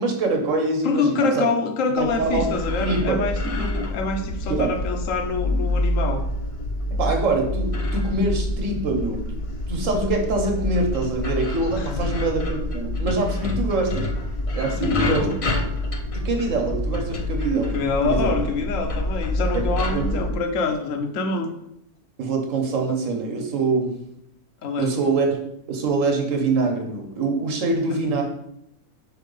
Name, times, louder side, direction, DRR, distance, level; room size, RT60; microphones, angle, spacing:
voice 1, 0.0-1.5 1.9-2.4 2.8-3.2 3.6-3.7 4.5-4.7 6.9-9.2 9.7-14.1 14.5-15.3 16.1-17.8 18.0-18.3 19.5-19.6 19.9-20.2 22.2-23.9 24.8-25.4 25.7-28.2, right 3 dB, 60° right, 3 dB, 1.5 m, -24 dB
voice 2, 0.8-6.2 11.8-12.1 14.7-15.4 17.7-21.5 24.6-25.0 28.0-28.2, left 4 dB, 60° left, 6 dB, 1.1 m, -26 dB
sound 1, 2.0-20.3, left 1 dB, 45° left, 0.4 m, -27 dB
4.6 x 4.4 x 5.4 m, 0.78 s
omnidirectional pair, 1.6 m